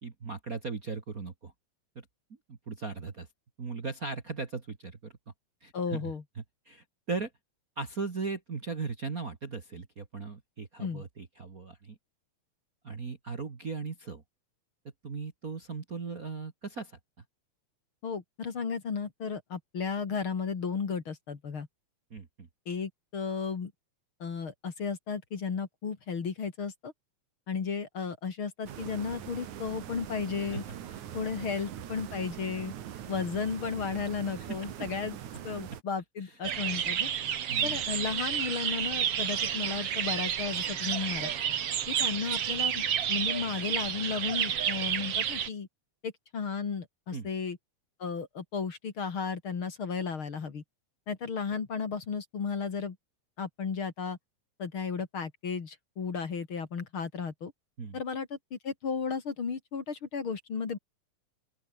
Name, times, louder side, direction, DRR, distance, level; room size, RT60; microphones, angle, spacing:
voice 1, 0.0-1.5 2.0-2.1 2.5-3.3 3.6-5.1 5.6-6.1 6.4-7.3 7.8-12.0 12.8-14.2 15.0-17.0 22.1-22.5 30.4-30.6 30.9-31.0 31.3-31.4 34.4-34.9 36.2-36.3 37.5-37.8 47.1-47.3 57.8-58.0, right 4 dB, 35° right, 1.9 m, -38 dB
voice 2, 5.7-6.2 10.8-11.0 18.0-21.7 22.7-23.7 24.2-26.9 27.5-30.6 31.1-32.7 33.1-35.1 35.4-37.1 37.6-41.3 41.9-45.7 46.0-47.6 48.0-50.6 51.1-53.0 53.4-54.2 54.6-57.5 57.9-60.8, left 5 dB, 45° left, 3.0 m, -34 dB
sound 1, 28.7-35.8, right 10 dB, 75° right, 3.1 m, -42 dB
sound 2, 36.4-45.5, right 9 dB, 55° right, 2.4 m, -30 dB
open air
omnidirectional pair, 3.5 m